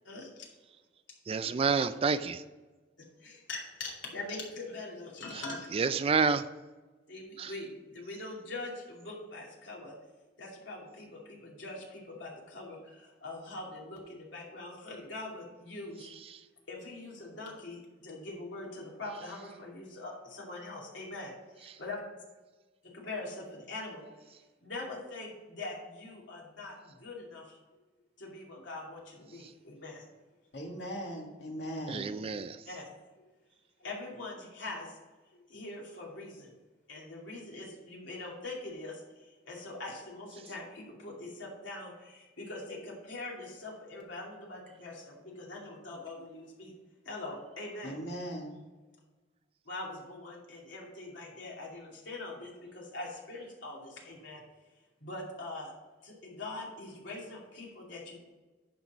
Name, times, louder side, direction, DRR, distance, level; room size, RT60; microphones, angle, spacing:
voice 1, 1.3-2.4 5.7-6.4 7.4-7.5 16.3-16.4 31.9-32.6, right 5 dB, 30° right, 0.3 m, -29 dB
voice 2, 3.2-5.7 7.1-9.9 10.4-12.8 13.2-16.1 16.7-17.8 18.0-21.3 21.8-22.0 22.9-24.0 24.6-26.7 27.0-27.4 28.2-30.0 31.6-31.7 32.7-32.9 33.8-34.9 35.5-36.5 36.9-39.0 39.5-41.9 42.4-46.7 47.1-48.0 49.7-54.4 55.0-55.7 56.0-58.2, left 2 dB, 85° left, 2.6 m, -42 dB
voice 3, 30.5-32.2 47.8-48.6, equal, 70° left, 2.0 m, -39 dB
10.5 x 4.0 x 6.2 m
head